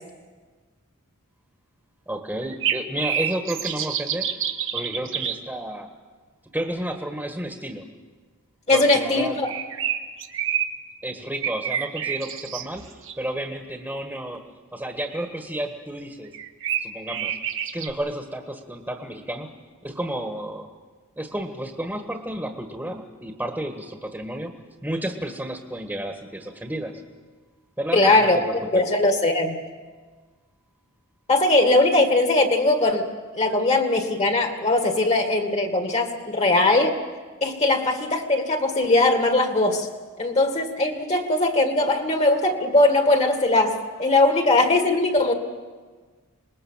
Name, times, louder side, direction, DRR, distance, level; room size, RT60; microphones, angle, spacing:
voice 1, 2.1-4.3 4.7-5.9 6.5-7.9 8.7-9.4 11.0-14.4 14.7-16.3 16.8-17.4 17.7-19.5 19.8-20.7 21.2-26.9 27.8-28.8, right 1 dB, 10° right, 4 dB, 1.7 m, -31 dB
sound 1, 2.4-5.4 9.5-10.7 11.4-13.1 16.3-17.9, right 9 dB, 60° right, 1.5 m, -28 dB
voice 2, 8.7-9.5 27.9-28.4 28.7-29.6 31.3-33.1 33.4-36.9 37.4-39.9 40.2-45.3, left 2 dB, 30° left, 5 dB, 2.0 m, -20 dB
26.5 x 20.5 x 7.4 m, 1.4 s
head